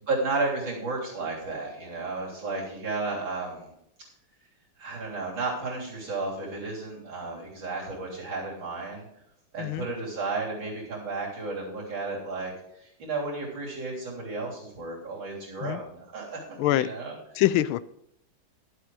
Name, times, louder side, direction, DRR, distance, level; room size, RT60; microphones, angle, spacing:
voice 1, 0.1-3.7 4.8-9.1 9.5-12.5 12.8-17.2, right 3 dB, 65° right, -4 dB, 4.1 m, -33 dB
voice 2, 16.6-16.9 17.3-17.8, left 14 dB, 90° left, 17 dB, 1.4 m, -24 dB
11.5 x 7.8 x 4.7 m, 0.78 s
omnidirectional pair, 2.2 m